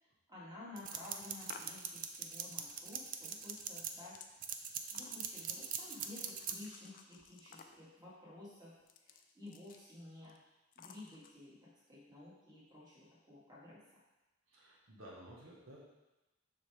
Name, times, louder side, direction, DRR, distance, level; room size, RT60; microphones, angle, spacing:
voice 1, 0.3-4.2 4.9-10.4 10.8-13.8, left 2 dB, 20° right, -7 dB, 2.1 m, -53 dB
sound 1, 0.8-3.9 4.4-6.6, right 8 dB, 45° right, 0.5 m, -41 dB
sound 2, 0.9-1.9 3.3-4.3 4.9-5.5 5.9-7.9 8.8-9.9 10.2-10.4 10.7-11.3, left 6 dB, 45° left, 0.5 m, -56 dB
voice 2, 14.5-15.8, right 1 dB, 80° right, -4 dB, 1.5 m, -54 dB
7.2 x 5.8 x 3.5 m, 1.0 s
head